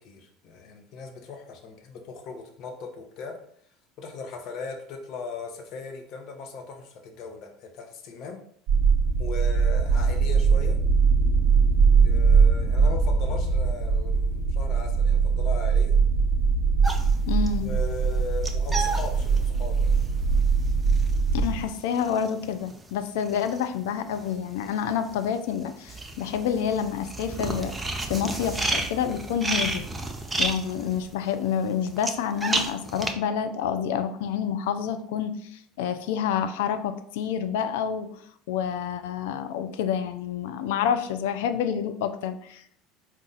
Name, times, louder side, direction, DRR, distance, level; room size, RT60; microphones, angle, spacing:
voice 1, 0.0-3.3 4.0-8.4 9.2-10.8 11.9-16.0 17.6-19.9, left 4 dB, 55° left, 3 dB, 0.8 m, -38 dB
sound 1, 8.7-21.6, right 5 dB, 55° right, 1.0 m, -21 dB
sound 2, 16.8-24.3 24.6-33.1, right 2 dB, 15° right, 0.5 m, -32 dB
voice 2, 17.3-17.7 21.3-27.7 28.1-29.9 30.4-35.4 35.8-38.1 38.5-42.8, left 8 dB, 75° left, 9 dB, 0.4 m, -28 dB
4.1 x 2.4 x 3.8 m, 0.64 s
hypercardioid pair, 75°, 0 cm